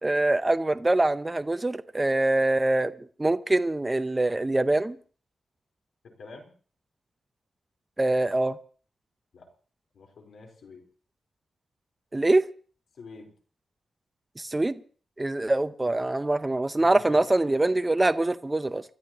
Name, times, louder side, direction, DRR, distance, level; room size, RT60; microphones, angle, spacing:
voice 1, 0.0-2.9 3.2-5.0 8.0-8.6 12.1-12.4 14.4-14.8 15.2-18.8, right 2 dB, 15° right, 10 dB, 0.7 m, -24 dB
voice 2, 6.0-6.5 9.3-9.5 9.9-10.8 13.0-13.3 15.5-15.6 16.8-17.3, left 4 dB, 80° left, 2 dB, 4.2 m, -47 dB
29.5 x 13.0 x 3.0 m, 0.42 s
wide cardioid pair, 125°, 0 cm